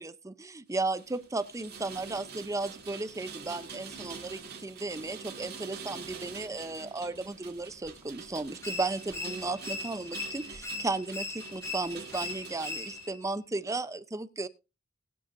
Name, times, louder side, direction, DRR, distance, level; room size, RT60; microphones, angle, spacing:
voice 1, 0.0-14.5, right 3 dB, 15° right, 13 dB, 0.6 m, -35 dB
Rain, 0.7-13.1, right 5 dB, 50° right, 2.8 m, -46 dB
sound 1, 8.6-13.2, left 3 dB, 15° left, 1.7 m, -39 dB
21.0 x 8.0 x 2.6 m, 0.28 s
head